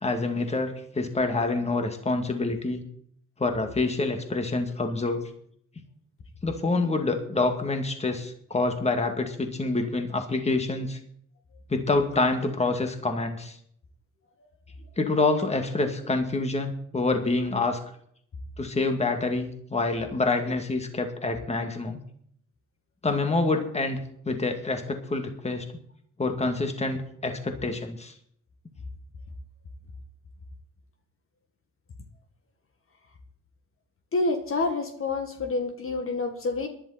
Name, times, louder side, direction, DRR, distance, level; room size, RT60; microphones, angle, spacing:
voice 1, 0.0-2.8 3.4-5.3 6.4-11.0 11.7-13.6 15.0-17.8 18.6-22.0 23.0-24.0 24.2-25.7 26.2-28.1, left 3 dB, 20° left, 5 dB, 2.3 m, -27 dB
voice 2, 34.1-36.7, left 3 dB, 45° left, 4 dB, 2.0 m, -28 dB
19.5 x 11.5 x 4.4 m, 0.66 s
cardioid pair, 90°, 30 cm